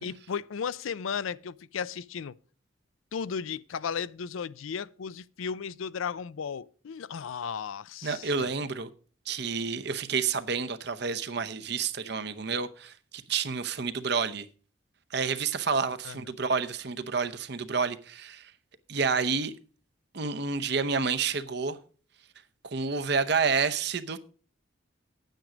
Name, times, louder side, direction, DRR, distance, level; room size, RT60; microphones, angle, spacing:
voice 1, 0.0-2.3 3.1-8.5 16.0-16.2, left 6 dB, 85° left, 0.4 m, -35 dB
voice 2, 8.0-8.9 9.3-12.9 13.3-14.5 15.1-18.5 18.9-19.5 20.1-21.8 22.7-24.2, right 5 dB, 55° right, 0.8 m, -29 dB
9.2 x 9.1 x 5.0 m
head